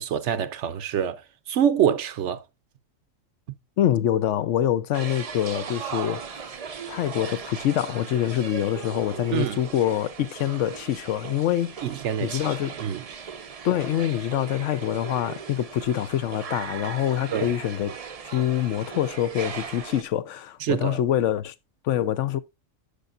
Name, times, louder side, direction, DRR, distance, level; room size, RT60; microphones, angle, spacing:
voice 1, 0.0-2.4 9.3-9.6 11.8-13.0 17.3-17.5 20.6-21.0, right 9 dB, 70° right, 0.9 m, -26 dB
voice 2, 3.8-6.5 6.9-11.8 12.2-12.7 13.6-17.9 18.3-21.5 21.8-22.4, left 11 dB, 70° left, 0.9 m, -25 dB
sound 1, 4.9-20.0, right 6 dB, 45° right, 0.5 m, -38 dB
10.0 x 6.8 x 2.4 m
omnidirectional pair, 1.3 m